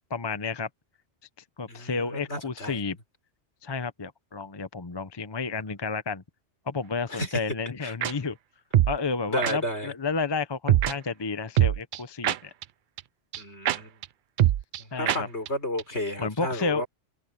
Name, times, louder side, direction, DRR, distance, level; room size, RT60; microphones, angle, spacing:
voice 1, 0.1-0.7 1.6-3.0 3.6-6.2 6.7-8.4 8.9-12.5 14.9-15.3 16.2-16.8, left 4 dB, 25° left, 0.7 m, -31 dB
voice 2, 1.7-2.8 7.1-7.4 7.8-7.9 9.3-9.9 13.4-14.0 14.8-16.9, equal, 65° left, 6.6 m, -32 dB
sound 1, 8.0-8.1 8.7-9.0 9.4-9.5 10.7-10.9 11.6-12.6 13.0-13.1 13.3-13.4 13.7-13.8 14.0-14.1 14.4-14.8 15.1-15.2 15.5-15.6 15.8-15.9, right 12 dB, 60° right, 0.5 m, -22 dB
omnidirectional pair, 1.2 m